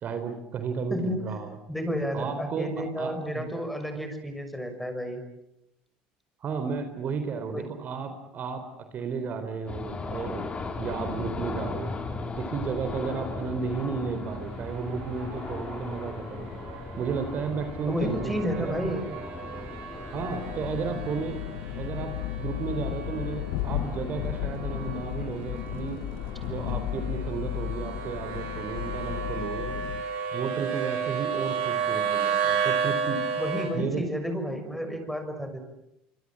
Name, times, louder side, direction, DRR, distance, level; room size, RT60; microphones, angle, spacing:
voice 1, 0.0-1.6 2.1-3.5 6.4-8.7 8.9-12.0 12.4-16.5 17.0-18.8 20.1-21.4 21.8-26.0 26.4-29.8 30.3-33.3 33.7-34.1, right 5 dB, 50° right, 8 dB, 3.9 m, -33 dB
voice 2, 0.9-1.4 1.7-5.2 7.5-7.7 17.9-19.1 33.4-35.6, equal, ahead, 7 dB, 6.4 m, -31 dB
sound 1, 9.7-29.3, left 3 dB, 30° left, 4.7 m, -39 dB
sound 2, 14.0-33.7, right 6 dB, 75° right, 7.5 m, -34 dB
sound 3, 20.1-30.0, left 13 dB, 75° left, 1.3 m, -34 dB
25.5 x 25.5 x 7.7 m, 0.85 s
supercardioid pair, 95°, 4 cm